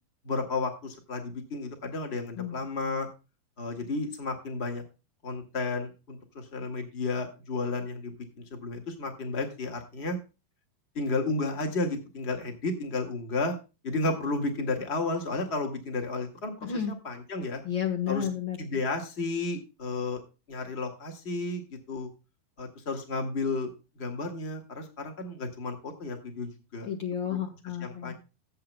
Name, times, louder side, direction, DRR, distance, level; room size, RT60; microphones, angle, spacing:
voice 1, 0.2-3.1 3.6-4.8 5.2-10.2 10.9-13.5 13.8-17.6 18.1-18.3 18.6-20.2 20.5-22.1 22.6-26.9 27.3-27.4 27.8-28.1, left 3 dB, 30° left, 5 dB, 1.2 m, -32 dB
voice 2, 16.6-16.9 17.6-18.8 26.9-28.1, left 8 dB, 85° left, 3 dB, 1.0 m, -32 dB
16.5 x 8.2 x 2.2 m, 0.29 s
omnidirectional pair, 4.3 m